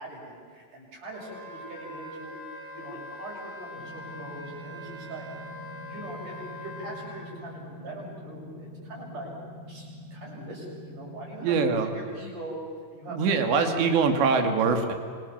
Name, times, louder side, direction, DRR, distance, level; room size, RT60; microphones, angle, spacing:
voice 1, 0.0-2.3 2.7-5.3 5.8-9.3 9.7-11.5 11.8-12.6 12.9-13.9, right 1 dB, 45° right, -3 dB, 8.5 m, -42 dB
Wind instrument woodwind instrument, 1.1-7.2, left 1 dB, 80° left, 10.5 m, -42 dB
sound 1, 3.7-11.4, left 1 dB, 15° left, 5.0 m, -45 dB
voice 2, 11.4-11.9 13.1-14.9, right 5 dB, 75° right, 6 dB, 4.5 m, -23 dB
29.0 x 26.0 x 7.4 m, 2.1 s
omnidirectional pair, 5.2 m